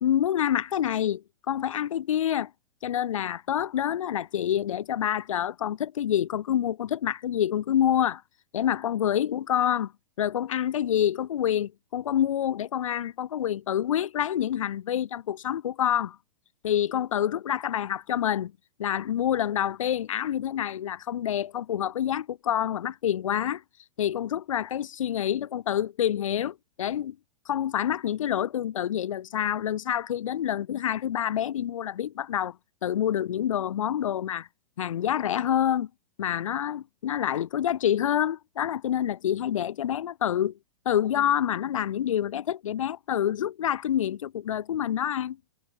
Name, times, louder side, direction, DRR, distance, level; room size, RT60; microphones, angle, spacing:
voice 1, 0.0-2.5 2.8-8.2 8.5-9.9 10.2-16.2 16.6-18.5 18.8-23.6 24.0-27.2 27.5-32.6 32.8-34.5 34.8-35.9 36.2-40.5 40.8-45.4, left 10 dB, 75° left, 1.2 m, -27 dB
hypercardioid pair, 115°, 17 cm